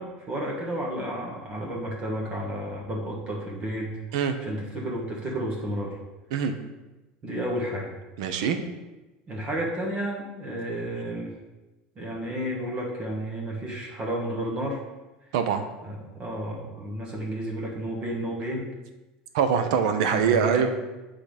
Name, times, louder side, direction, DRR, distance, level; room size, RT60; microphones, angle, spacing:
voice 1, 0.0-4.0 4.4-6.0 7.2-7.9 9.3-11.4 11.9-14.8 15.2-15.3 15.8-18.7 20.0-20.7, right 1 dB, 30° right, -1 dB, 1.4 m, -32 dB
voice 2, 8.2-8.6 15.3-15.6 19.3-20.7, right 7 dB, 80° right, 8 dB, 0.8 m, -23 dB
8.4 x 3.9 x 5.1 m, 1.1 s
supercardioid pair, 150°, 3 cm